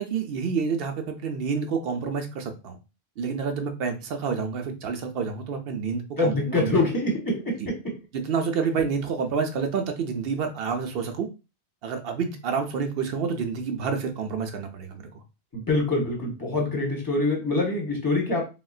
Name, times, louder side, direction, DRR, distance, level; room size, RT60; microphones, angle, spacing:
voice 1, 0.0-2.8 3.2-6.7 7.6-7.7 8.1-11.3 11.8-15.2, right 5 dB, 65° right, 5 dB, 0.8 m, -28 dB
voice 2, 6.2-7.9 15.5-18.4, left 2 dB, 20° left, -1 dB, 0.9 m, -25 dB
4.0 x 2.1 x 2.4 m, 0.29 s
omnidirectional pair, 1.1 m